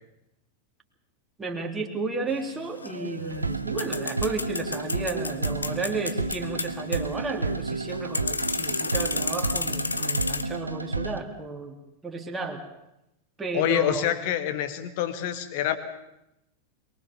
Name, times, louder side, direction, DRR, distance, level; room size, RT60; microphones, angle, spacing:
voice 1, 1.4-11.8 12.0-12.6 13.4-14.1, right 3 dB, 15° right, 2 dB, 3.0 m, -33 dB
sound 1, 2.3-10.4, left 3 dB, 80° left, 1.1 m, -32 dB
sound 2, 2.9-11.2, right 3 dB, 80° right, 1.0 m, -31 dB
voice 2, 13.5-15.8, left 11 dB, 50° left, 10 dB, 2.1 m, -26 dB
23.0 x 21.0 x 7.1 m, 0.87 s
figure-of-eight pair, 90°, 0 cm